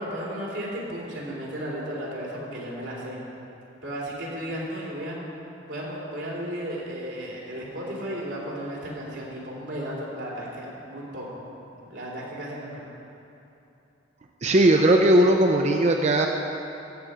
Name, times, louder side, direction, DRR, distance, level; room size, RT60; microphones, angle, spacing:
voice 1, 0.0-3.2 3.8-5.2 5.7-12.8, equal, 90° right, -5 dB, 3.1 m, -34 dB
voice 2, 14.4-16.3, right 1 dB, 40° right, 3 dB, 0.5 m, -18 dB
14.0 x 4.9 x 8.0 m, 2.9 s
head